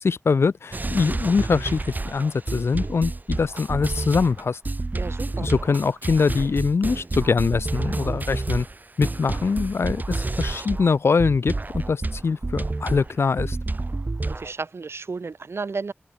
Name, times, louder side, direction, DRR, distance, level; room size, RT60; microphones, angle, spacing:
voice 1, 0.0-4.6 5.4-8.7 9.0-13.6, left 5 dB, 80° left, 0.4 m, -23 dB
sound 1, 0.7-10.9 11.2-14.5, right 2 dB, 45° right, 1.8 m, -29 dB
voice 2, 4.9-5.5 14.3-15.9, right 4 dB, 80° right, 1.0 m, -32 dB
open air
wide cardioid pair, 75°, 4 cm